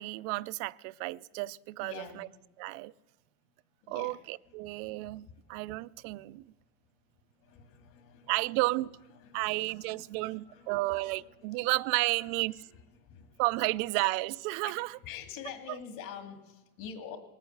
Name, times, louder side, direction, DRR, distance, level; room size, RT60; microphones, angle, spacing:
voice 1, 0.0-2.3 2.6-2.9 3.9-6.4 8.3-8.9 9.3-12.6 13.4-14.9, right 21 dB, 80° right, 0.5 m, -32 dB
voice 2, 1.8-2.2 3.8-4.2 4.5-5.7 7.3-8.5 8.9-11.7 12.2-13.4 14.6-17.2, left 7 dB, 55° left, 2.3 m, -48 dB
19.5 x 9.3 x 7.9 m
cardioid pair, 180°, 39 cm